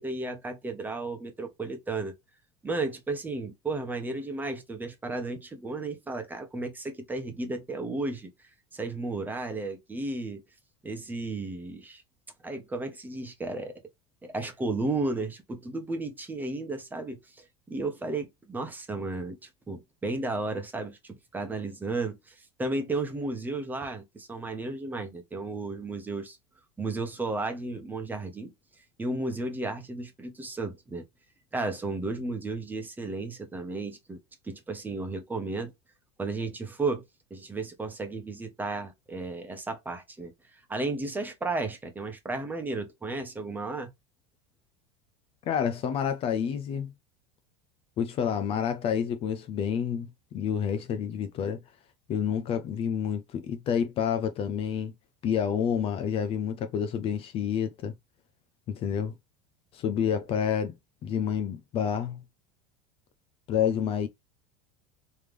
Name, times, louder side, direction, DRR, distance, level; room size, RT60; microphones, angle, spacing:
voice 1, 0.0-2.1 2.6-10.4 10.8-12.0 12.4-13.8 14.2-26.4 26.8-28.5 29.0-31.0 31.5-34.2 34.4-35.7 36.2-37.0 37.3-43.9, right 3 dB, 10° right, 1.1 m, -33 dB
voice 2, 45.5-46.9 48.0-51.6 52.1-54.9 55.2-57.9 58.7-59.1 59.7-60.7 61.0-62.2 63.5-64.1, left 8 dB, 40° left, 0.6 m, -29 dB
3.5 x 3.2 x 3.3 m
supercardioid pair, 125°, 15 cm